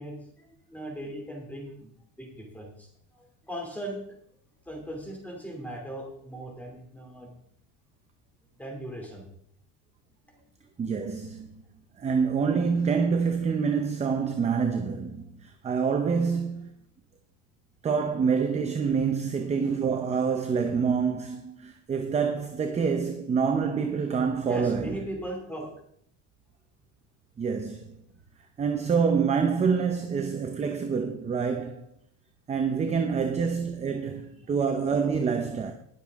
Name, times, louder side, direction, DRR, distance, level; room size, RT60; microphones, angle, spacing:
voice 1, 0.0-1.9 2.2-2.9 3.1-4.0 4.7-7.3 8.6-9.2 11.7-11.8 24.5-25.7, right 1 dB, 5° left, 2.7 m, -38 dB
voice 2, 10.8-11.6 12.0-16.7 17.8-25.0 27.4-28.0 28.6-31.9 32.5-35.7, right 6 dB, 15° right, 0.7 m, -26 dB
19.5 x 7.0 x 3.6 m
cardioid pair, 160°, 38 cm